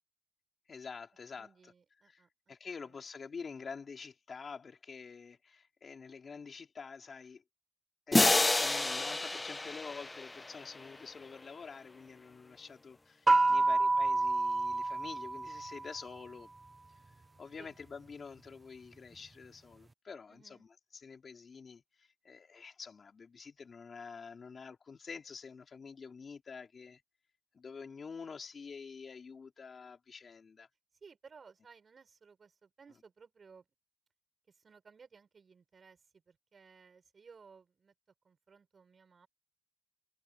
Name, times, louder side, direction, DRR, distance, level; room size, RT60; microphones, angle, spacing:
voice 1, 0.7-1.7 2.0-7.4 8.1-16.5 17.4-20.6 20.9-27.0 27.5-30.7, left 5 dB, 85° left, 4.0 m, -48 dB
voice 2, 1.4-2.6 2.8-3.0 13.4-13.8 17.6-17.8 20.3-20.7 31.0-33.6 34.5-37.9 38.2-39.3, right 5 dB, 85° right, 6.5 m, -59 dB
sound 1, 8.1-10.9, left 2 dB, 35° left, 0.4 m, -29 dB
sound 2, 13.3-16.0, right 3 dB, 45° right, 0.5 m, -28 dB
cardioid pair, 55°, 0 cm